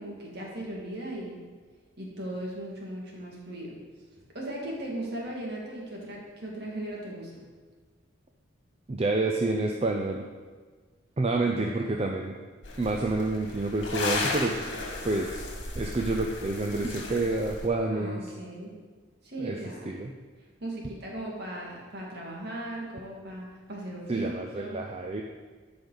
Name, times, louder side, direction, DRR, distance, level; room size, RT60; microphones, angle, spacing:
voice 1, 0.0-1.4 2.0-3.7 4.3-7.3 17.9-18.7 19.2-19.9 20.6-24.8, right 1 dB, 50° right, -3 dB, 2.1 m, -37 dB
voice 2, 8.9-10.2 11.2-12.3 12.8-14.6 15.0-18.2 19.4-19.6 19.9-20.1 24.1-25.2, right 2 dB, 30° right, 2 dB, 0.4 m, -28 dB
sound 1, 12.6-17.7, left 2 dB, 65° left, 1.9 m, -34 dB
13.0 x 5.2 x 4.0 m, 1.5 s
head